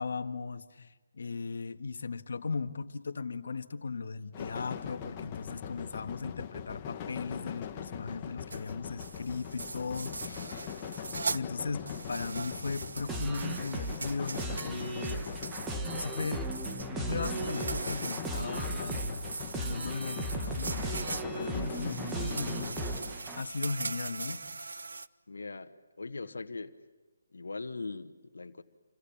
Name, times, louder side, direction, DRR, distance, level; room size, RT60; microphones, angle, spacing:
voice 1, 0.0-10.7 11.3-15.2 15.9-16.6 16.9-24.7, left 4 dB, 65° left, 1.7 m, -37 dB
sound 1, 4.3-23.1, left 8 dB, 20° left, 1.5 m, -41 dB
sound 2, 8.5-8.7 9.0-11.4 11.8-25.1, right 3 dB, 80° right, 1.1 m, -40 dB
sound 3, 13.1-23.4, right 2 dB, 10° right, 1.4 m, -37 dB
voice 2, 25.3-26.8 27.3-28.6, left 3 dB, 90° left, 1.6 m, -40 dB
29.0 x 24.5 x 7.3 m
hypercardioid pair, 165°, 0 cm